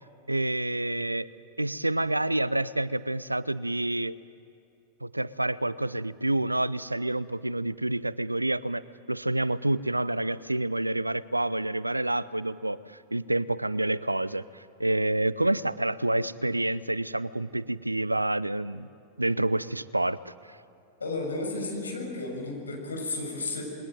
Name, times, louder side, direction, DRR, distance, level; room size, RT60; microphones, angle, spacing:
voice 1, 0.3-1.3 1.6-4.2 5.0-8.8 9.1-14.4 14.8-18.9 19.2-20.2, right 1 dB, 85° right, 19 dB, 0.6 m, -28 dB
voice 2, 21.0-23.6, left 2 dB, 75° left, 1 dB, 6.6 m, -33 dB
28.0 x 22.0 x 9.2 m, 2.5 s
figure-of-eight pair, 90°, 0 cm